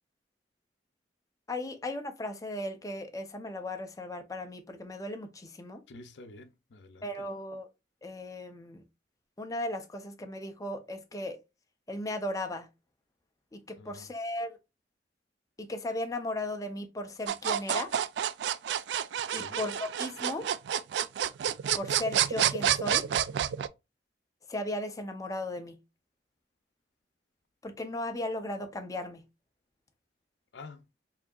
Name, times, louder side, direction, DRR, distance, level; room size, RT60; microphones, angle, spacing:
voice 1, 1.5-5.8 7.0-7.7 8.0-8.8 9.4-11.4 11.9-12.7 13.5-14.6 15.6-17.9 19.3-20.5 21.7-23.1 24.5-25.8 27.6-29.2, left 1 dB, 20° left, 0.5 m, -36 dB
voice 2, 5.9-7.1 13.8-14.1 19.3-19.6 30.5-30.8, left 3 dB, 80° left, 0.5 m, -48 dB
sound 1, 17.3-23.7, right 9 dB, 75° right, 0.3 m, -29 dB
4.6 x 2.8 x 2.3 m
head